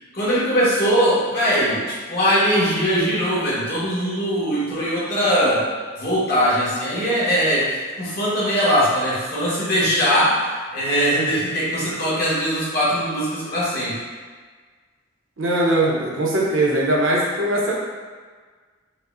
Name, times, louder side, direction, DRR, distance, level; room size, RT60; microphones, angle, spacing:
voice 1, 0.1-5.7 6.0-10.4 10.7-14.0, equal, 50° left, -8 dB, 1.2 m, -21 dB
voice 2, 15.4-17.7, right 1 dB, 75° right, -4 dB, 0.8 m, -20 dB
5.0 x 2.1 x 2.5 m, 1.5 s
head